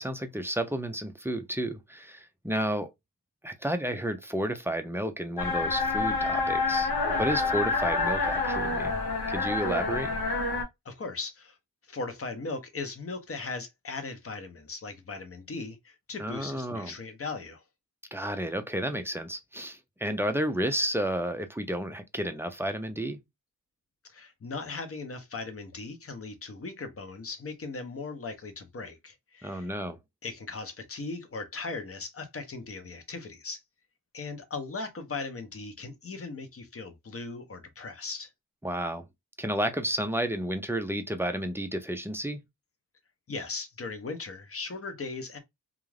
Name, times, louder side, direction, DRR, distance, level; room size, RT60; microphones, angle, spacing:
voice 1, 0.0-2.9 3.4-9.0 9.3-10.1 16.2-16.9 18.1-23.2 29.4-30.0 38.6-39.1 39.4-42.4, right 1 dB, 5° right, 0.3 m, -31 dB
sound 1, 5.4-10.6, left 3 dB, 85° left, 0.8 m, -28 dB
voice 2, 10.8-11.6 11.9-17.6 24.1-29.7 30.2-33.6 34.1-38.3 43.3-45.4, left 3 dB, 40° left, 0.6 m, -38 dB
2.4 x 2.3 x 3.1 m
wide cardioid pair, 145°, 37 cm